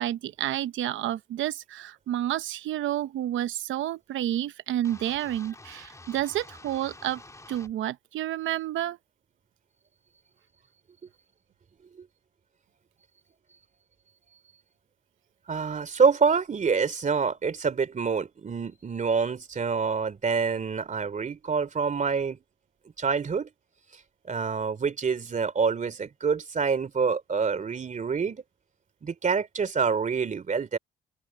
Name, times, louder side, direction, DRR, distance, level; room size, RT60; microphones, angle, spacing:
voice 1, 0.0-7.2 7.5-9.0, right 12 dB, 75° right, 0.8 m, -30 dB
sound 1, 4.8-7.7, left 2 dB, 15° left, 4.3 m, -48 dB
voice 2, 15.5-22.4 23.0-23.5 24.3-28.4 29.0-30.8, right 5 dB, 40° right, 3.0 m, -26 dB
open air
cardioid pair, 90°, 20 cm